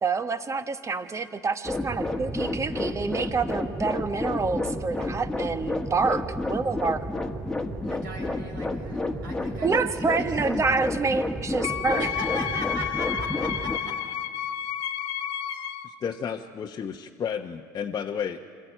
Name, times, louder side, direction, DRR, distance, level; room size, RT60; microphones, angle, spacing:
voice 1, 0.0-7.0 9.6-12.1, right 4 dB, 30° right, 9 dB, 1.4 m, -27 dB
sound 1, 1.6-13.8, left 2 dB, 5° left, 1.8 m, -30 dB
voice 2, 7.8-9.7 10.2-10.3 11.9-13.9, right 1 dB, 85° right, 0 dB, 5.2 m, -38 dB
Wind instrument woodwind instrument, 11.6-15.9, left 10 dB, 60° left, 1.2 m, -31 dB
voice 3, 15.8-18.4, left 7 dB, 35° left, 1 dB, 1.0 m, -32 dB
26.0 x 13.5 x 9.2 m, 2.1 s
hypercardioid pair, 70°, 10 cm